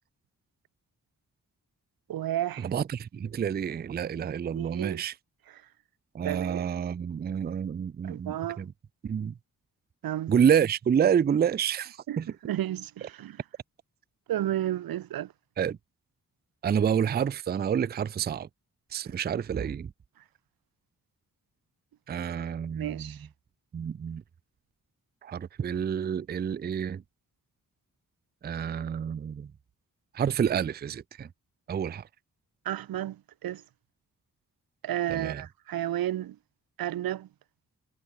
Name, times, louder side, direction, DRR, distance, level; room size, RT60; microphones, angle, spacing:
voice 1, 2.1-2.7 4.5-5.0 5.5-5.6 6.2-6.6 8.0-8.6 10.0-10.3 12.1-13.4 14.3-15.3 19.0-19.1 22.8-23.3 32.6-33.6 34.8-36.4 36.8-37.3, right 12 dB, 85° right, 0.7 m, -32 dB
voice 2, 2.6-5.1 6.1-8.7 9.0-9.3 10.3-12.3 15.6-15.8 16.6-18.5 18.9-19.9 22.1-23.2 23.7-24.2 25.2-27.0 28.4-29.5 30.1-31.3 31.7-32.0 35.1-35.4, right 8 dB, 30° right, 0.4 m, -28 dB
wide cardioid pair, 115°, 35 cm